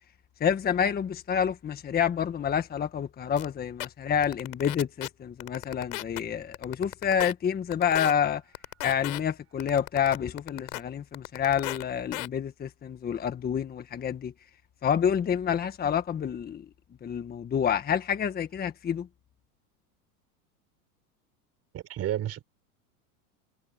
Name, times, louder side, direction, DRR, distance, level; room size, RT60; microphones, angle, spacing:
voice 1, 0.4-8.4 8.8-14.3 14.8-16.6 17.0-19.1, left 8 dB, 20° left, 1.5 m, -28 dB
sound 1, 3.4-3.5 3.8-3.9 4.2-5.1 5.4-6.2 6.5-7.3 7.7-8.1 8.5-9.2 9.6-10.8 11.1-11.8 12.1-12.3, left 18 dB, 75° left, 4.9 m, -34 dB
voice 2, 21.7-22.4, right 12 dB, 35° right, 4.4 m, -31 dB
supercardioid pair, 130°, 44 cm